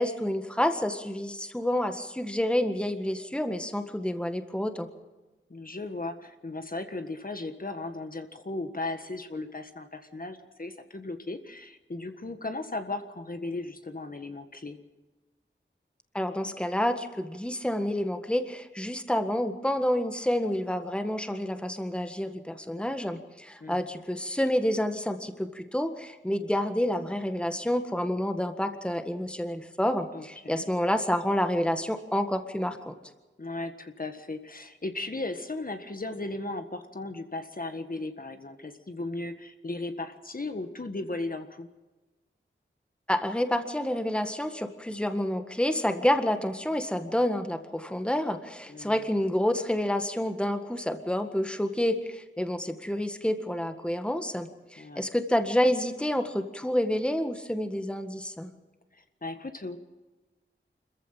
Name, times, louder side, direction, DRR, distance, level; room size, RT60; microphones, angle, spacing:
voice 1, 0.0-4.9 16.1-33.0 43.1-58.5, left 1 dB, 5° left, 7 dB, 1.7 m, -29 dB
voice 2, 5.5-14.8 23.6-23.8 30.1-30.7 33.4-41.7 48.7-49.1 54.8-55.1 58.9-59.8, left 2 dB, 45° left, 7 dB, 1.6 m, -36 dB
26.0 x 15.0 x 7.5 m, 1.2 s
wide cardioid pair, 60°, 20 cm